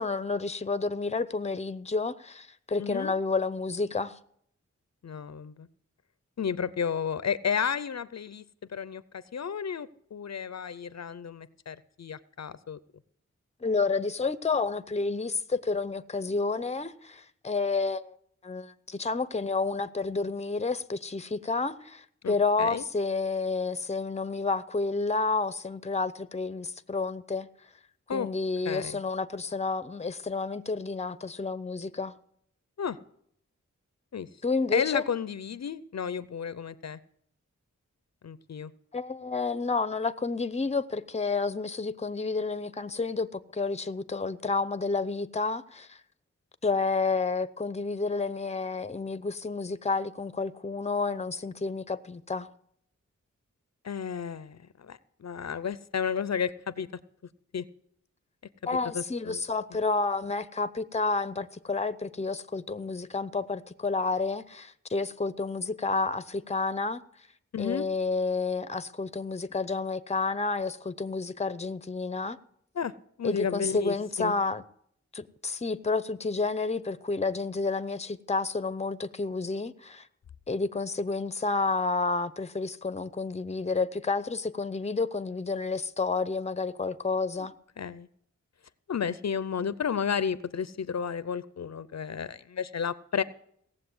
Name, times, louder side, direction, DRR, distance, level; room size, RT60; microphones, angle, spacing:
voice 1, 0.0-4.2 13.6-18.2 18.4-27.5 28.1-32.1 34.4-35.0 38.9-46.0 46.6-52.5 58.7-67.0 67.6-72.4 73.2-74.6 75.1-80.1 80.5-87.5, left 4 dB, 20° left, 0.7 m, -30 dB
voice 2, 2.8-3.1 5.0-5.7 6.4-8.4 8.7-12.8 22.2-22.8 28.1-28.3 28.6-29.0 32.8-33.0 34.1-34.3 34.7-37.0 38.2-38.7 53.8-56.9 57.5-57.6 58.7-59.4 59.7-59.8 67.5-67.9 72.7-72.9 73.2-74.3 87.4-87.5 87.8-88.1 88.9-93.2, left 7 dB, 65° left, 0.6 m, -32 dB
17.5 x 7.5 x 7.8 m
wide cardioid pair, 90°, 29 cm